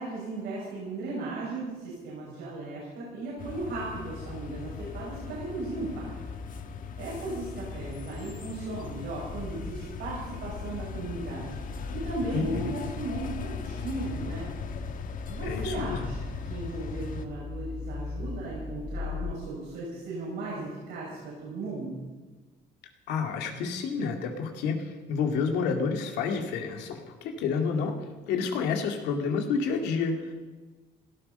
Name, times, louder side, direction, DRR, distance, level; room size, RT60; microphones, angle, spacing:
voice 1, 0.0-6.0 7.0-11.5 12.0-14.5 15.3-22.0, right 2 dB, 85° right, -6 dB, 6.7 m, -36 dB
sound 1, 3.4-17.3, left 5 dB, 50° left, 1.4 m, -39 dB
sound 2, 9.3-19.3, left 4 dB, 25° left, 1.3 m, -40 dB
voice 2, 12.3-12.7 15.4-16.1 23.1-28.0 28.3-30.3, left 5 dB, 90° left, 4 dB, 2.4 m, -29 dB
18.0 x 13.0 x 5.5 m, 1.3 s
cardioid pair, 110°, 17 cm